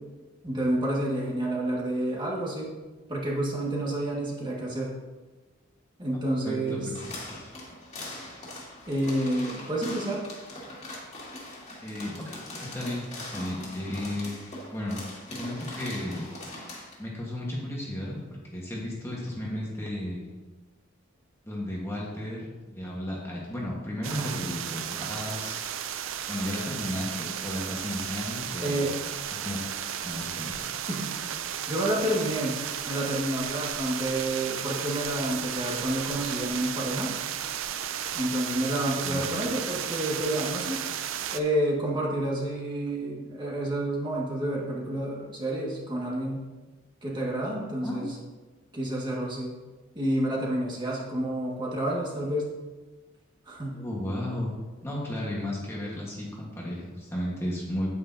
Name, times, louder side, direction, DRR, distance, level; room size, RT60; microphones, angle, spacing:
voice 1, 0.4-2.7 3.1-4.9 6.0-6.9 8.9-10.2 24.1-24.4 24.9-25.3 28.6-29.0 30.9-31.1 31.7-32.6 32.9-37.1 38.1-40.8 41.3-46.4 47.0-48.0 48.7-49.6 50.0-52.5 53.5-53.8, right 1 dB, 25° right, -4 dB, 1.8 m, -29 dB
voice 2, 6.4-6.9 11.8-15.0 15.4-16.3 17.0-18.2 18.5-20.2 21.5-25.7 26.3-28.9 29.4-30.6 39.0-39.3 47.8-48.1 53.7-54.5 54.8-57.9, left 1 dB, 15° left, -5 dB, 1.4 m, -34 dB
sound 1, 6.9-16.9, left 1 dB, 35° left, 2.3 m, -41 dB
sound 2, 24.0-41.4, right 9 dB, 80° right, 0.5 m, -34 dB
9.5 x 9.3 x 2.8 m, 1.3 s
head